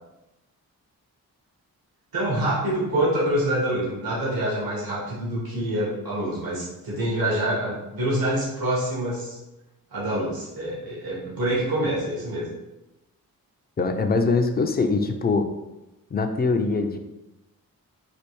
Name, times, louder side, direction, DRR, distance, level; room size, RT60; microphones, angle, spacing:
voice 1, 2.1-9.4 9.9-12.5, right 1 dB, 80° right, -7 dB, 1.3 m, -26 dB
voice 2, 13.8-15.5 16.1-17.0, left 3 dB, 30° left, 6 dB, 0.4 m, -23 dB
3.4 x 2.3 x 3.0 m, 0.98 s
cardioid pair, 50°, 36 cm